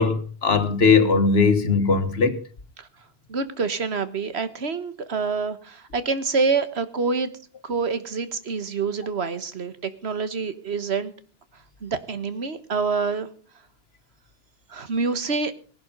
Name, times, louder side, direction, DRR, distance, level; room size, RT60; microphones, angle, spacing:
voice 1, 0.0-2.4, left 4 dB, 75° left, 11 dB, 1.7 m, -19 dB
voice 2, 3.3-7.3 7.6-11.1 11.8-13.3 14.7-15.5, right 4 dB, 85° right, 12 dB, 1.6 m, -26 dB
18.5 x 11.5 x 5.3 m, 0.40 s
omnidirectional pair, 1.1 m